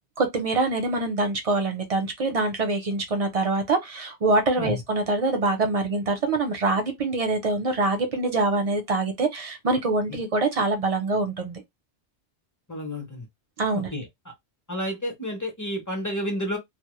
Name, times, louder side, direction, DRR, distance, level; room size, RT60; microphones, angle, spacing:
voice 1, 0.2-11.6 13.6-13.9, right 2 dB, 40° right, 0.5 m, -24 dB
voice 2, 12.7-13.3 13.7-14.3 14.7-16.6, equal, 20° left, 0.5 m, -31 dB
2.1 x 2.1 x 2.9 m
omnidirectional pair, 1.2 m